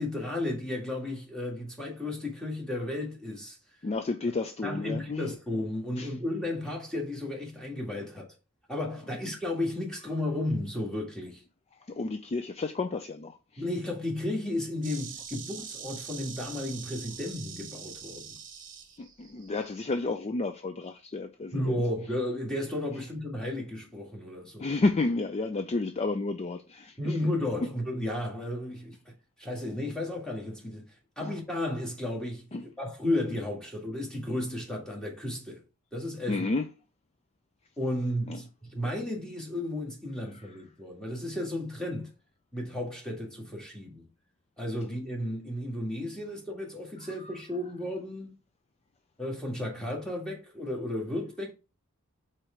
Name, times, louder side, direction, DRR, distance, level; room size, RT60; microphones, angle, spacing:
voice 1, 0.0-3.6 4.6-8.3 8.7-11.4 13.6-18.4 21.5-24.8 27.0-29.1 29.4-35.6 35.9-36.5 37.8-42.1 42.5-44.1 44.6-48.4 49.2-51.5, left 1 dB, 5° left, 1.9 m, -33 dB
voice 2, 3.8-5.3 6.0-6.1 11.9-13.6 19.0-21.7 24.6-27.2 31.2-31.3 32.5-32.6 36.3-36.7 38.3-38.4 47.2-47.3, left 3 dB, 30° left, 0.4 m, -31 dB
Insect, 14.8-19.8, right 7 dB, 40° right, 1.2 m, -44 dB
4.6 x 4.4 x 5.0 m
head